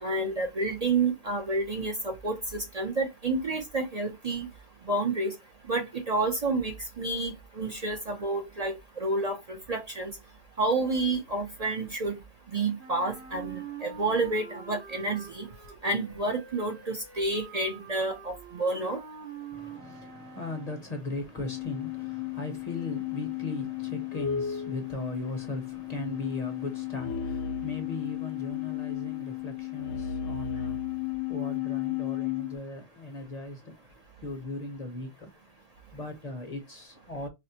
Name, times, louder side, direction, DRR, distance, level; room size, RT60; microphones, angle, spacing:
voice 1, 0.0-4.5 4.9-5.3 5.7-10.1 10.6-12.2 12.5-15.5 15.8-19.0, right 2 dB, 40° right, 0.7 m, -29 dB
Wind instrument woodwind instrument, 12.8-20.9, right 6 dB, 70° right, 1.4 m, -45 dB
voice 2, 19.5-35.5 35.9-37.3, left 2 dB, 40° left, 0.7 m, -38 dB
sound 1, 21.4-32.6, left 11 dB, 80° left, 0.9 m, -34 dB
4.2 x 2.1 x 2.7 m
omnidirectional pair, 1.1 m